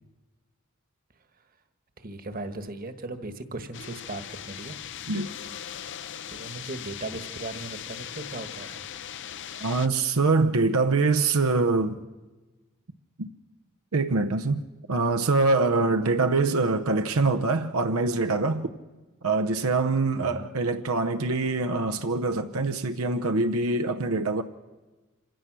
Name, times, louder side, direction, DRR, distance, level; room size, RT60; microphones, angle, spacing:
voice 1, 2.0-4.8 6.3-8.8 20.1-20.5, right 2 dB, 45° right, 1.4 m, -38 dB
sound 1, 3.7-9.9, left 9 dB, 60° left, 0.6 m, -39 dB
voice 2, 9.6-12.0 13.2-13.3 13.9-14.6 14.9-18.7 19.2-24.4, right 3 dB, 85° right, 0.8 m, -24 dB
26.5 x 16.5 x 6.1 m
head